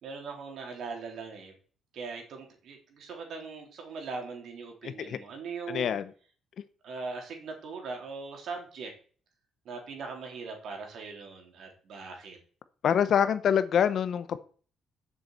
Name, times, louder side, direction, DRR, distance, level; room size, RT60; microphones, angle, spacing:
voice 1, 0.0-1.5 1.9-6.0 6.8-8.9 9.6-12.4, right 4 dB, 55° right, 3.4 m, -40 dB
voice 2, 4.8-5.2 5.7-6.0 12.8-14.4, left 8 dB, 50° left, 0.7 m, -25 dB
7.6 x 6.6 x 8.0 m
cardioid pair, 170°, 0 cm